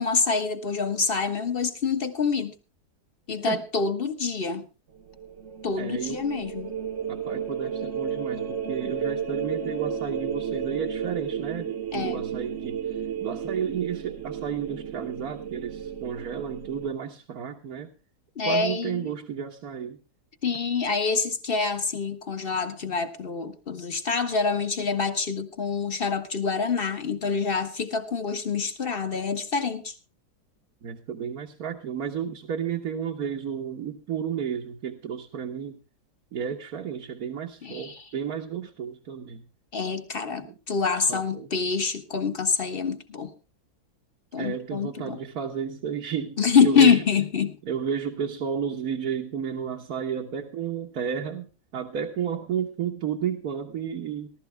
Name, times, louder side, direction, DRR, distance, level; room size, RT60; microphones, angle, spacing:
voice 1, 0.0-2.5 3.3-4.7 5.6-6.7 11.9-12.2 18.4-19.1 20.4-29.9 37.6-38.0 39.7-43.3 44.3-45.2 46.4-47.6, left 5 dB, 35° left, 8 dB, 1.4 m, -26 dB
sound 1, 5.0-16.9, right 7 dB, 50° right, 1.4 m, -33 dB
voice 2, 5.8-6.3 7.1-17.9 18.5-20.0 30.8-35.8 36.3-39.4 40.4-40.6 41.0-41.5 44.4-47.0 47.7-54.3, right 7 dB, 65° right, 2 dB, 1.7 m, -32 dB
18.5 x 12.5 x 3.4 m, 0.32 s
omnidirectional pair, 1.7 m